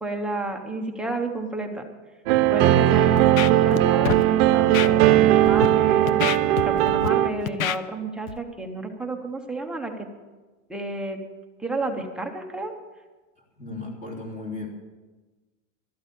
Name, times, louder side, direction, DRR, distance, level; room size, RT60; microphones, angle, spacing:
voice 1, 0.0-1.8 2.5-6.2 6.6-9.9 10.7-11.2 11.6-12.7, right 2 dB, ahead, 2 dB, 0.8 m, -31 dB
sound 1, 2.3-7.3, right 13 dB, 45° right, 0.8 m, -18 dB
Scratching (performance technique), 3.2-3.8 4.0-4.2 4.7-4.9 5.4-5.7 6.1-7.1 7.5-7.8 8.3-8.4, left 11 dB, 90° left, 0.8 m, -27 dB
voice 2, 13.6-14.7, left 3 dB, 20° left, 0 dB, 3.0 m, -35 dB
13.0 x 8.7 x 8.4 m, 1.2 s
supercardioid pair, 165°, 39 cm